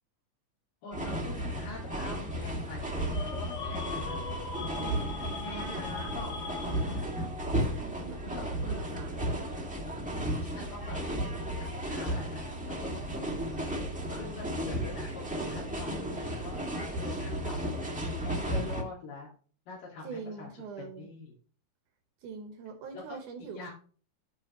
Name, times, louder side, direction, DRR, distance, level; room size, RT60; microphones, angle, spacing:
voice 1, 0.8-4.2 5.4-7.1 8.2-8.8 10.3-13.5 14.1-16.6 16.9-17.7 18.0-19.3 19.7-20.5 20.8-21.3 23.1-23.2 23.5-23.7, left 3 dB, 90° left, -5 dB, 3.8 m, -45 dB
sound 1, 0.9-18.8, right 1 dB, 5° right, 1.1 m, -34 dB
sound 2, 3.1-7.3, left 5 dB, 60° left, 2.4 m, -40 dB
voice 2, 4.7-5.8 7.6-8.3 8.6-9.3 20.0-21.1 22.2-23.7, right 5 dB, 75° right, 5 dB, 2.6 m, -44 dB
13.5 x 5.1 x 3.0 m, 0.41 s
omnidirectional pair, 3.7 m